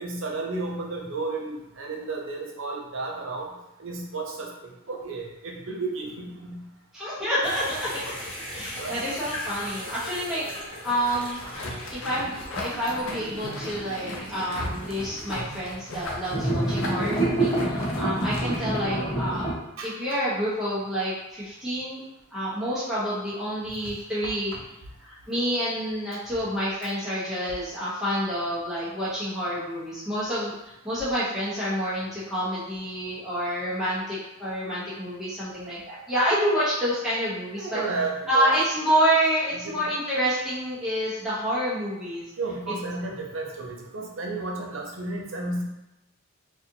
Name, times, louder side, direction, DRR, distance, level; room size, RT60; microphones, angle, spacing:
voice 1, 0.0-3.5 3.8-6.6 8.4-9.0 19.8-19.9 24.2-24.3 37.5-38.5 39.5-39.8 42.4-45.6, right 3 dB, 65° right, 0 dB, 0.7 m, -33 dB
voice 2, 6.9-8.1 8.5-11.4 11.9-19.5 19.8-22.0 22.3-24.5 25.0-30.5 30.8-37.8 38.3-42.2, equal, ahead, -11 dB, 1.1 m, -28 dB
sound 1, 7.4-15.4 16.3-19.5, right 1 dB, 25° left, 0.8 m, -31 dB
sound 2, 11.0-19.2, left 1 dB, 65° left, 0.7 m, -37 dB
4.2 x 2.6 x 2.7 m, 0.89 s
head